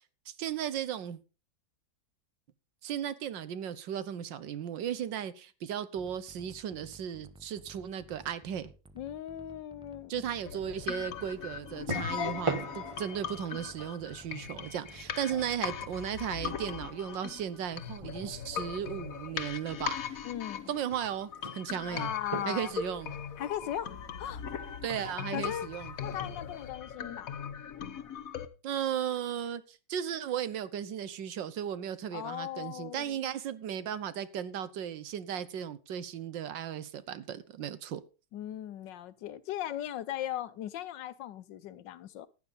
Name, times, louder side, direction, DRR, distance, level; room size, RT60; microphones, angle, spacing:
voice 1, 0.3-1.2 2.8-8.7 10.1-20.3 20.7-22.1 22.5-23.1 24.8-25.9 28.6-38.0, right 9 dB, 80° right, 1.7 m, -36 dB
sound 1, 5.9-16.5, right 1 dB, 5° right, 0.4 m, -55 dB
voice 2, 8.9-10.1 11.9-12.2 15.3-15.4 20.2-20.7 21.8-22.7 23.4-24.7 25.3-25.7 26.0-27.3 32.1-33.2 38.3-42.3, left 11 dB, 75° left, 1.4 m, -38 dB
sound 2, 10.5-28.5, left 7 dB, 55° left, 1.3 m, -39 dB
sound 3, 10.8-26.7, right 3 dB, 20° right, 0.9 m, -44 dB
15.0 x 9.9 x 4.0 m
omnidirectional pair, 2.0 m